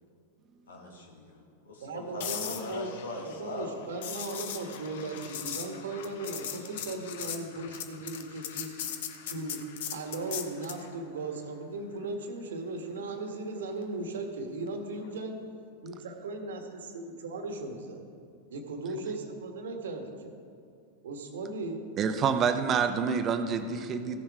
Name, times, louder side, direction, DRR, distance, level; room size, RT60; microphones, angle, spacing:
voice 1, 0.7-1.4 1.7-3.7, left 2 dB, 80° left, 0 dB, 2.1 m, -40 dB
voice 2, 1.8-2.9 3.2-8.7 9.2-15.4 15.8-18.0 18.5-20.3 21.0-21.8, right 2 dB, 70° right, 5 dB, 1.4 m, -37 dB
sound 1, 2.2-10.9 15.0-15.3, left 9 dB, 65° left, 1.0 m, -39 dB
voice 3, 22.0-24.2, right 6 dB, 35° right, 8 dB, 0.9 m, -27 dB
15.5 x 7.3 x 4.7 m, 2.5 s
hypercardioid pair, 95°, 0 cm